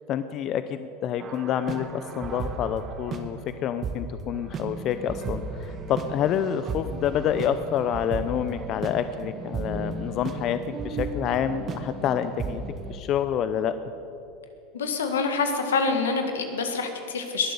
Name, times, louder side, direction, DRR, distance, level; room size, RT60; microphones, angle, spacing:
voice 1, 0.1-12.6 12.9-13.8, left 9 dB, 45° left, 11 dB, 0.6 m, -28 dB
sound 1, 1.2-3.2 3.8-4.0 4.3-13.0, right 3 dB, 35° right, 1.5 m, -34 dB
voice 2, 14.7-17.5, left 4 dB, 90° left, 6 dB, 1.7 m, -26 dB
21.0 x 7.6 x 6.9 m, 2.7 s
hypercardioid pair, 95°, 0 cm